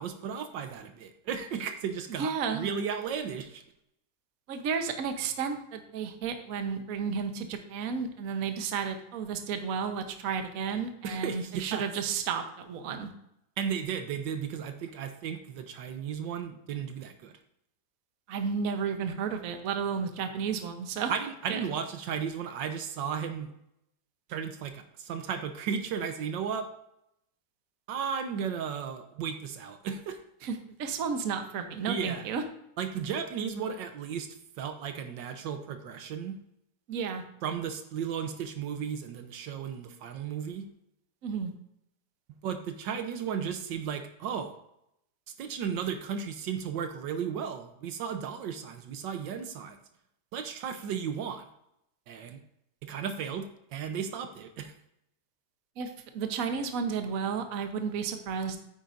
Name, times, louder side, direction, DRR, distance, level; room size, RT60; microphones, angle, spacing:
voice 1, 0.0-3.6 11.0-11.8 13.6-17.3 21.1-23.5 24.3-26.7 27.9-30.2 31.9-32.3 32.8-34.3 34.6-36.4 37.4-40.7 42.4-44.5 45.4-49.8 50.3-51.5 52.1-52.4 52.8-54.7, right 7 dB, 80° right, 8 dB, 1.4 m, -34 dB
voice 2, 2.2-2.7 4.5-13.1 18.3-21.1 21.5-21.6 30.4-32.4 36.9-37.2 41.2-41.5 55.8-58.6, right 6 dB, 55° right, 6 dB, 1.2 m, -32 dB
9.3 x 8.6 x 2.6 m, 0.78 s
omnidirectional pair, 2.0 m